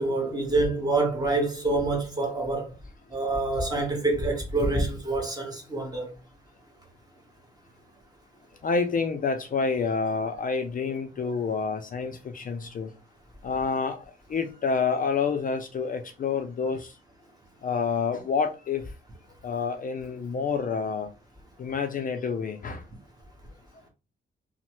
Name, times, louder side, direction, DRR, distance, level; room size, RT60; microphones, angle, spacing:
voice 1, 0.0-2.7 3.1-6.1, right 2 dB, 20° right, 1.1 m, -26 dB
voice 2, 8.6-12.9 13.4-16.9 17.6-18.9 19.4-21.1 21.6-22.8, left 5 dB, 45° left, 0.4 m, -28 dB
3.0 x 2.1 x 2.9 m
cardioid pair, 105°, 20 cm